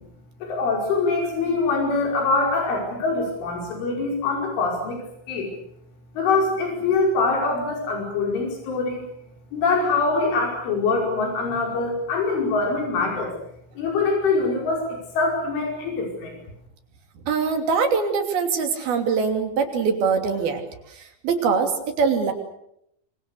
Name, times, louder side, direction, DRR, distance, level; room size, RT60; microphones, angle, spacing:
voice 1, 0.4-5.5 6.2-9.0 9.5-13.3 13.8-16.4, left 3 dB, 85° left, 0 dB, 7.7 m, -24 dB
voice 2, 17.3-20.6 21.0-22.3, right 5 dB, 55° right, 5 dB, 4.6 m, -23 dB
26.5 x 26.0 x 6.8 m, 0.76 s
omnidirectional pair, 5.4 m